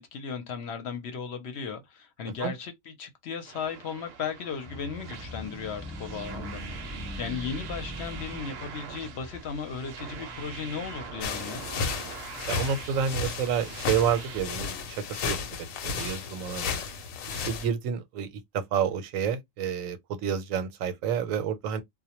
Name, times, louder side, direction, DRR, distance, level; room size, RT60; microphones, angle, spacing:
voice 1, 0.0-11.6, left 6 dB, 60° left, 0.8 m, -36 dB
sound 1, 3.4-14.4, right 6 dB, 65° right, 0.7 m, -43 dB
sound 2, 4.6-13.5, equal, 15° left, 0.8 m, -43 dB
sound 3, 11.2-17.7, left 5 dB, 90° left, 1.0 m, -33 dB
voice 2, 12.5-14.7 15.1-15.6 15.8-16.8 17.3-18.3 18.5-21.8, right 7 dB, 85° right, 1.0 m, -29 dB
2.2 x 2.1 x 2.8 m
omnidirectional pair, 1.3 m